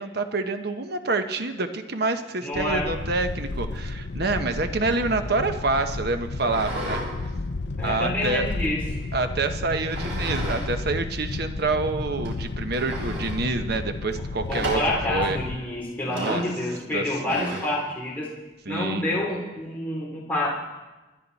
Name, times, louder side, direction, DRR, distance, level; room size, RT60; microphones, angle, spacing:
voice 1, 0.0-7.0 7.8-8.5 9.1-14.8 15.1-15.4 16.1-16.4 16.9-17.6 18.7-19.0, right 3 dB, 55° right, 8 dB, 1.0 m, -27 dB
voice 2, 2.4-2.9 7.7-8.8 14.5-18.3 18.7-20.5, left 1 dB, 10° left, -6 dB, 3.3 m, -28 dB
sound 1, 2.5-15.6, left 3 dB, 60° left, 0.6 m, -32 dB
sound 2, 6.4-7.1 7.5-8.9 9.9-10.7 11.0-11.1 11.7-11.8 12.3-12.4 12.7-13.4 14.5-15.1 16.1-16.5 17.3-17.8, right 1 dB, 80° right, 5.3 m, -34 dB
29.0 x 10.5 x 4.1 m, 1.2 s
head